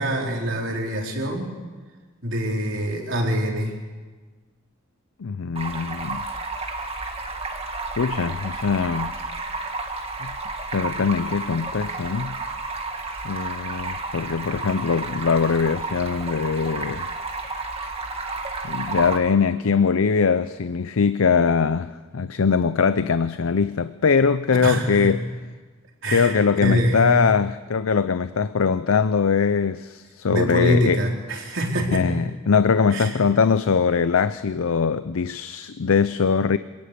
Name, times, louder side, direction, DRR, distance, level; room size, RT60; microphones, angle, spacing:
voice 1, 0.0-1.6 2.2-3.7 24.6-25.2 26.0-27.2 30.3-32.2 32.9-33.2, equal, 65° right, 4.4 m, -24 dB
voice 2, 5.2-6.3 8.0-9.1 10.2-10.3 10.7-12.4 13.2-17.1 18.6-25.3 26.1-31.0 31.9-36.6, left 5 dB, 85° left, 0.6 m, -22 dB
Stream, 5.6-19.2, right 3 dB, 30° right, 1.9 m, -31 dB
27.0 x 18.0 x 6.8 m
head